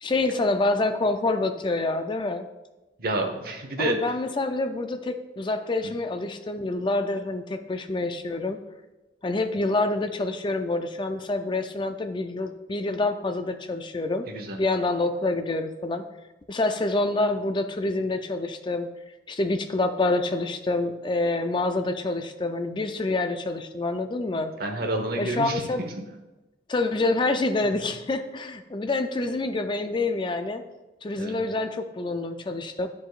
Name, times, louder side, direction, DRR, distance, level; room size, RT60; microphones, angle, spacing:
voice 1, 0.0-2.5 3.8-8.6 9.2-14.3 14.6-16.1 16.5-18.9 19.3-24.5 25.2-25.8 26.7-30.6 31.0-32.9, left 2 dB, 25° left, 7 dB, 0.4 m, -27 dB
voice 2, 3.0-4.0 14.3-14.6 24.6-25.9 27.7-27.8 31.2-31.4, right 2 dB, 55° right, 4 dB, 1.0 m, -29 dB
10.0 x 4.8 x 2.4 m, 1.1 s
head